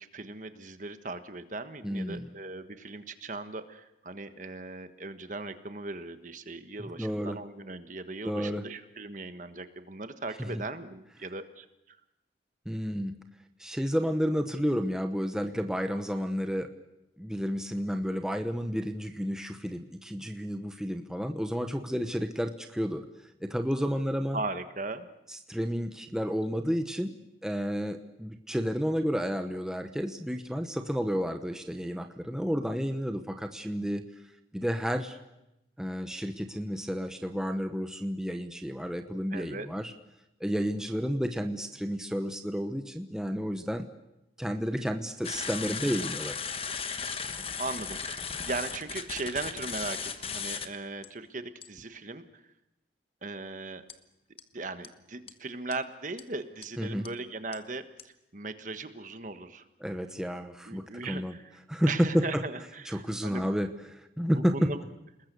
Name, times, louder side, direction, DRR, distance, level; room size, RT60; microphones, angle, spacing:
voice 1, 0.0-12.0 24.3-25.1 39.3-39.7 47.6-52.4 53.2-53.8 54.5-59.6 60.1-60.2 60.7-61.5 61.9-63.5 64.3-64.8, right 3 dB, 45° right, 9 dB, 1.4 m, -38 dB
voice 2, 1.8-2.3 7.0-7.4 8.2-8.6 10.4-10.6 12.6-13.1 13.6-16.7 17.2-23.0 23.4-24.4 25.3-27.1 27.4-34.0 34.5-35.2 35.8-39.9 40.4-43.9 44.4-46.4 56.8-57.1 59.8-61.3 61.7-62.4 62.9-64.7, equal, 5° right, 5 dB, 1.0 m, -31 dB
sound 1, 45.2-50.7 51.0-51.1 51.6-51.8 53.9-54.0 54.4-54.5 54.8-54.9 55.3-55.4 55.7-55.8 56.2-56.3 56.6-56.7 57.1-57.2 57.5-57.6 58.0-58.1, left 6 dB, 30° left, 1.2 m, -36 dB
30.0 x 20.5 x 6.9 m, 0.90 s
head